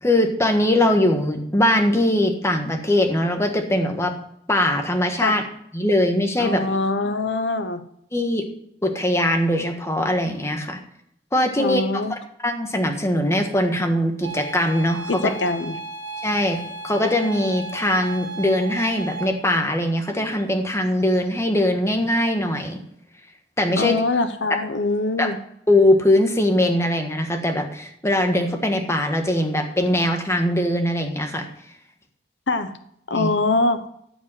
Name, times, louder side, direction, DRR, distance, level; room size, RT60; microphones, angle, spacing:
voice 1, 0.0-4.1 4.5-5.4 5.7-6.6 8.1-8.4 8.8-10.8 11.3-11.8 12.4-15.3 16.2-22.8 23.6-23.9 25.2-25.3 25.7-31.5 33.1-33.3, left 1 dB, 15° left, 5 dB, 1.5 m, -21 dB
voice 2, 6.4-7.8 11.6-12.2 15.1-15.8 23.8-25.4 32.5-32.7 33.1-33.9, left 2 dB, 80° left, 10 dB, 0.9 m, -23 dB
sound 1, 14.2-19.3, right 2 dB, 80° right, 3.6 m, -35 dB
14.0 x 5.4 x 7.7 m, 0.73 s
head